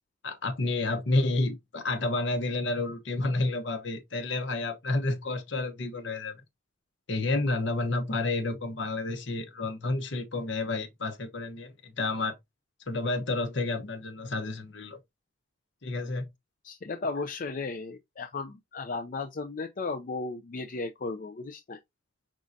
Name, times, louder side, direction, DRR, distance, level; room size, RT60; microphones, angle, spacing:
voice 1, 0.2-6.4 7.1-12.4 12.9-15.0 15.8-16.3, left 2 dB, 60° left, 0.9 m, -30 dB
voice 2, 16.6-21.8, left 3 dB, 40° left, 0.4 m, -35 dB
5.1 x 3.6 x 2.6 m
head